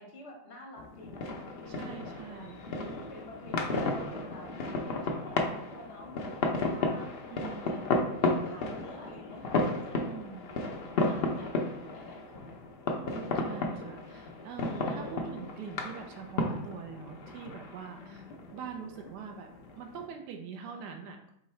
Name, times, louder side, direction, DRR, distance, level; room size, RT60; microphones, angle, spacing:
voice 1, 0.0-7.1 7.4-10.1 11.0-12.6 15.0-15.2 17.9-18.5 20.6-20.8, left 2 dB, 45° left, -1 dB, 1.3 m, -50 dB
sound 1, 0.8-20.0, left 2 dB, 85° left, 0.5 m, -34 dB
voice 2, 1.7-2.6 7.3-7.8 10.0-10.5 12.9-19.5 19.8-21.3, right 6 dB, 80° right, 3 dB, 1.2 m, -43 dB
3.6 x 3.0 x 4.4 m, 0.72 s
omnidirectional pair, 1.8 m